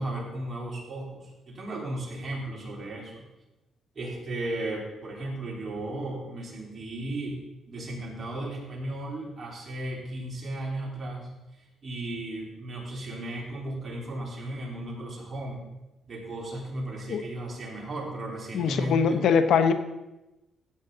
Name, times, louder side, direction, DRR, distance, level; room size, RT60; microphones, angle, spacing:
voice 1, 0.0-3.3 3.9-7.4 7.7-11.3 11.8-15.6 16.1-19.2, right 1 dB, 35° right, -3 dB, 4.0 m, -35 dB
voice 2, 18.5-19.7, left 6 dB, 75° left, 10 dB, 0.8 m, -22 dB
14.0 x 8.8 x 3.9 m, 0.99 s
cardioid pair, 90°, 0 cm